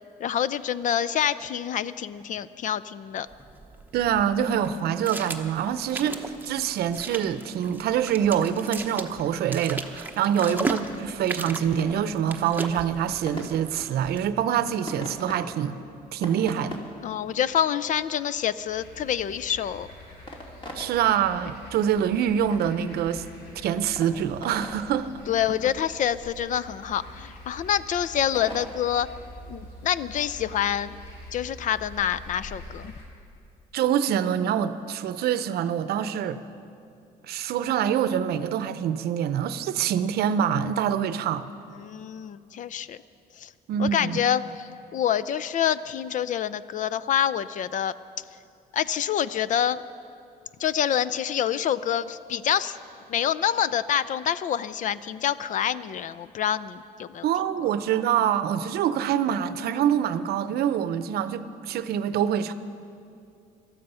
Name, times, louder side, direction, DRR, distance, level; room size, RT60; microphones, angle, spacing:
voice 1, 0.2-3.3 10.4-10.6 17.0-19.9 25.3-29.1 29.5-31.0 31.3-32.9 41.8-43.0 43.4-43.5 43.8-47.9 48.7-49.8 50.6-52.8 53.1-57.3, left 9 dB, 50° left, 16 dB, 0.5 m, -27 dB
sound 1, 3.3-14.3, right 3 dB, 10° right, 1.0 m, -37 dB
voice 2, 3.9-15.8 16.1-16.8 20.7-23.2 23.6-25.1 33.7-36.4 37.3-41.5 43.7-44.2 57.2-62.5, right 9 dB, 70° right, 13 dB, 0.7 m, -25 dB
sound 2, 11.7-29.4, left 1 dB, 30° left, 2.5 m, -45 dB
sound 3, 18.7-33.0, left 1 dB, 80° left, 3.7 m, -46 dB
18.5 x 13.0 x 5.6 m, 2.5 s
cardioid pair, 110°, 17 cm